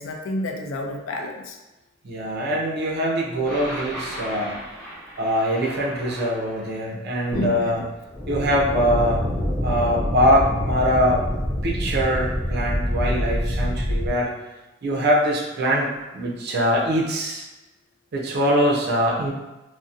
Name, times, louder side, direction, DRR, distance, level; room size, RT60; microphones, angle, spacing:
voice 1, 0.0-1.6 7.3-7.8, left 1 dB, 75° left, 2 dB, 0.4 m, -30 dB
voice 2, 2.0-4.6 5.2-7.8 8.3-9.2 9.6-11.2 11.6-14.3 14.8-17.5 18.1-19.3, equal, 55° right, -2 dB, 0.4 m, -23 dB
sound 1, 3.5-6.6 7.3-14.1, equal, 5° left, 1.0 m, -27 dB
2.6 x 2.0 x 2.4 m, 1.0 s
head